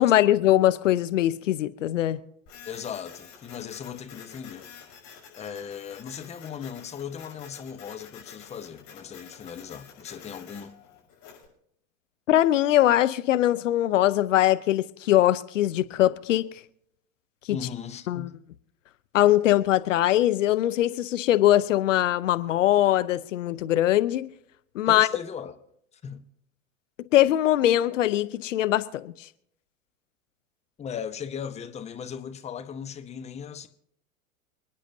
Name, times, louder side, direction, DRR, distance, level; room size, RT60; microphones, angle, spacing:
voice 1, 0.0-2.2 12.3-16.4 17.5-17.6 18.1-18.3 19.1-24.3 24.7-25.1 27.1-29.1, left 13 dB, 65° left, 0.7 m, -22 dB
Printer, 2.5-11.4, left 7 dB, 45° left, 6.7 m, -49 dB
voice 2, 2.7-4.7 5.3-10.8 17.5-18.4 24.9-25.6 26.0-26.3 30.8-33.7, left 7 dB, 15° left, 0.8 m, -38 dB
28.5 x 9.9 x 2.7 m
figure-of-eight pair, 85°, 41 cm